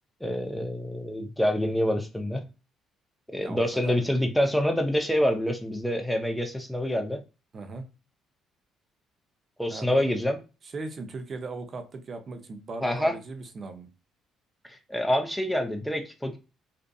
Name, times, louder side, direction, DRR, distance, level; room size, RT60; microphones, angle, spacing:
voice 1, 0.2-2.4 3.3-7.2 9.6-10.4 12.8-13.1 14.9-16.4, equal, 5° left, 4 dB, 0.4 m, -26 dB
voice 2, 3.4-3.9 7.5-7.8 9.7-10.1 10.6-13.9, right 3 dB, 45° right, 7 dB, 0.5 m, -38 dB
2.6 x 2.4 x 2.2 m, 0.30 s
cardioid pair, 85°, 0 cm